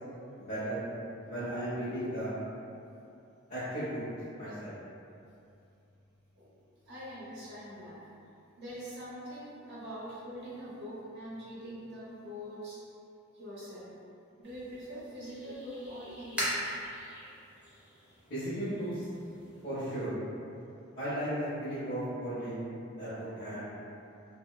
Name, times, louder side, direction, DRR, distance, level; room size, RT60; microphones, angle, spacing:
voice 1, 0.4-0.8 1.2-2.3 3.5-4.0 4.3-4.7 18.3-19.1 19.6-20.1 21.0-22.7 23.0-23.7, right 1 dB, 45° left, -13 dB, 0.6 m, -35 dB
voice 2, 6.8-8.0 8.6-12.8 13.3-13.9 14.4-16.8, equal, 60° right, -10 dB, 0.9 m, -43 dB
sound 1, 14.4-19.6, equal, 5° right, 0.5 m, -41 dB
2.7 x 2.0 x 2.2 m, 2.6 s
head